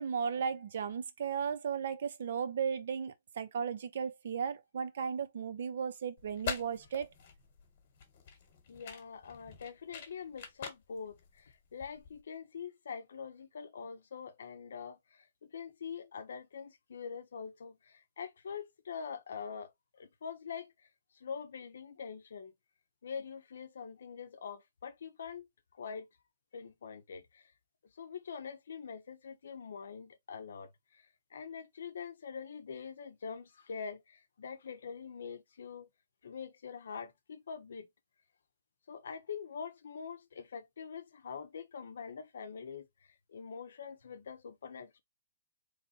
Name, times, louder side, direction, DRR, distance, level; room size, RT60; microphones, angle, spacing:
voice 1, 0.0-7.1, right 7 dB, 55° right, 0.7 m, -35 dB
sound 1, 6.2-12.2, left 7 dB, 40° left, 1.3 m, -45 dB
voice 2, 8.7-20.7 21.1-22.5 23.0-25.5 25.7-26.1 26.5-27.5 27.8-35.9 36.2-37.9 38.9-45.0, left 6 dB, 70° left, 0.7 m, -44 dB
4.1 x 3.2 x 2.8 m
hypercardioid pair, 175°, 0 cm